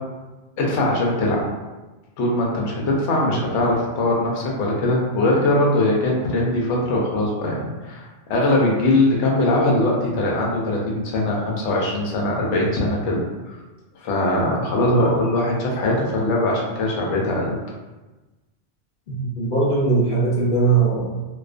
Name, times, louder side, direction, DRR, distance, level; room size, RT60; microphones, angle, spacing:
voice 1, 0.6-1.4 2.2-13.2 14.0-17.5, left 1 dB, 75° left, -2 dB, 0.9 m, -21 dB
voice 2, 14.9-15.2 19.1-21.2, right 4 dB, 50° left, -7 dB, 1.1 m, -20 dB
2.3 x 2.3 x 2.4 m, 1.2 s
omnidirectional pair, 1.3 m